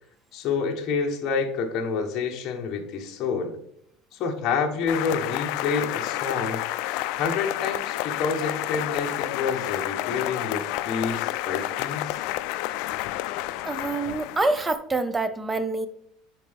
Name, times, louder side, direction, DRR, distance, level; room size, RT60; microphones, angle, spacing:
voice 1, 0.3-3.6 4.1-6.6 7.2-12.2, left 5 dB, 45° left, 1.0 m, -28 dB
sound 1, 4.9-14.7, left 16 dB, 65° left, 0.3 m, -30 dB
voice 2, 13.6-15.9, right 3 dB, 10° right, 0.5 m, -26 dB
9.2 x 4.4 x 3.4 m
cardioid pair, 145°, 0 cm